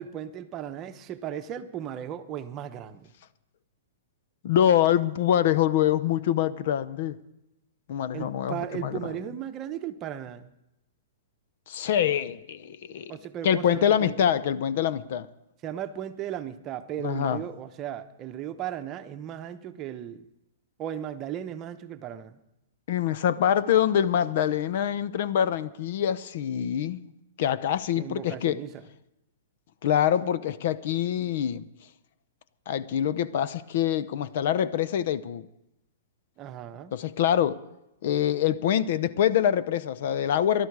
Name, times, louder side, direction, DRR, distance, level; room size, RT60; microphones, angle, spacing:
voice 1, 0.0-3.1 8.1-10.5 13.1-14.2 15.6-20.3 20.8-22.4 28.0-28.8 36.4-36.9, right 10 dB, 30° right, 1.0 m, -36 dB
voice 2, 4.4-7.2 7.9-9.0 11.7-13.1 13.4-15.3 17.0-17.4 22.9-27.1 27.4-28.6 29.8-31.6 32.7-35.5 36.9-37.6 38.0-40.7, left 10 dB, 60° left, 0.7 m, -25 dB
19.5 x 12.0 x 4.8 m
hypercardioid pair, 130°, 0 cm